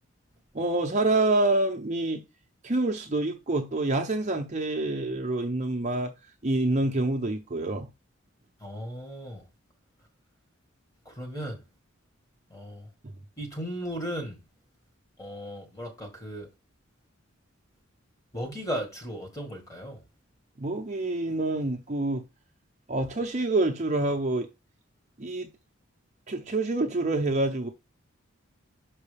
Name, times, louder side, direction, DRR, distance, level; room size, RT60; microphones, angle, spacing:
voice 1, 0.5-2.2 2.6-6.1 6.4-7.9 20.6-22.2 22.9-24.5 25.2-25.5 26.3-27.7, right 2 dB, 35° right, 0.6 m, -27 dB
voice 2, 8.6-9.4 11.1-11.6 12.5-12.8 13.4-14.4 15.2-16.5 18.3-20.0, equal, 15° left, 1.7 m, -36 dB
6.0 x 5.3 x 3.4 m
head